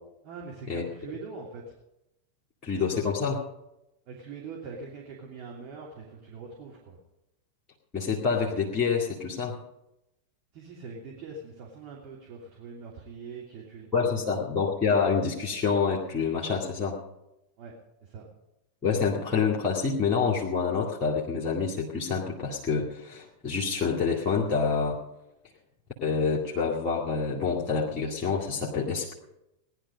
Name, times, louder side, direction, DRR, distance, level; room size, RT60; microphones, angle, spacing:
voice 1, 0.2-1.7 4.1-7.0 10.5-14.5 17.6-17.7 18.0-18.3, right 4 dB, 40° right, -3 dB, 2.9 m, -43 dB
voice 2, 2.6-3.4 7.9-9.6 13.9-17.0 18.8-25.0 26.0-29.1, left 5 dB, 25° left, -3 dB, 2.2 m, -27 dB
18.0 x 11.0 x 5.2 m, 0.89 s
figure-of-eight pair, 90°, 0 cm